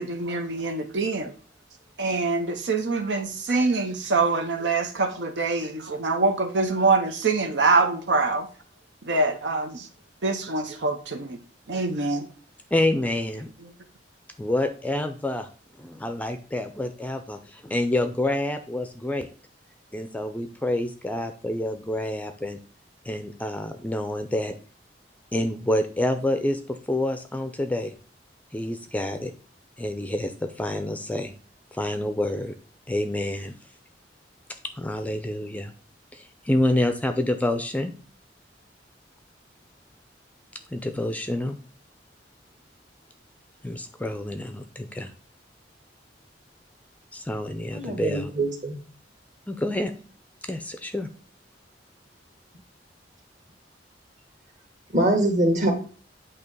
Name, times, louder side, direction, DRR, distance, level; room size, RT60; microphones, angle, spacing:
voice 1, 0.0-1.3 2.0-8.5 9.0-9.9 10.2-11.4 11.7-12.3, right 3 dB, 75° right, 5 dB, 0.8 m, -24 dB
voice 2, 12.7-13.5 14.4-15.5 15.8-19.3 19.9-22.6 23.0-24.5 25.3-27.9 28.5-29.3 29.8-31.3 31.7-32.5 32.9-33.5 34.6-35.7 36.1-37.9 40.7-41.6 43.6-45.1 47.1-48.3 49.5-49.9 50.4-51.1, left 1 dB, 10° left, 8 dB, 0.5 m, -28 dB
voice 3, 47.7-48.8 54.9-55.7, right 1 dB, 45° right, 2 dB, 1.7 m, -23 dB
8.4 x 2.9 x 5.3 m, 0.40 s
head